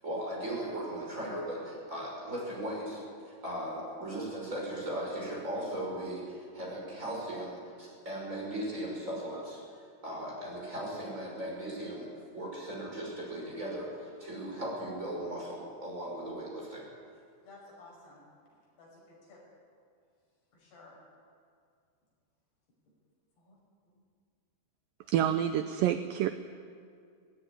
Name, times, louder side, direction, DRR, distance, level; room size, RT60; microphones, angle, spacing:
voice 1, 0.0-9.6 10.0-12.1 12.3-16.8, right 1 dB, 20° right, -4 dB, 6.2 m, -37 dB
voice 2, 17.4-19.4 20.5-21.0 23.4-23.6 23.9-24.0, left 2 dB, 70° left, -3 dB, 7.8 m, -55 dB
voice 3, 25.1-26.3, right 10 dB, 85° right, 9 dB, 2.0 m, -28 dB
18.5 x 16.5 x 9.9 m, 2.2 s
omnidirectional pair, 4.8 m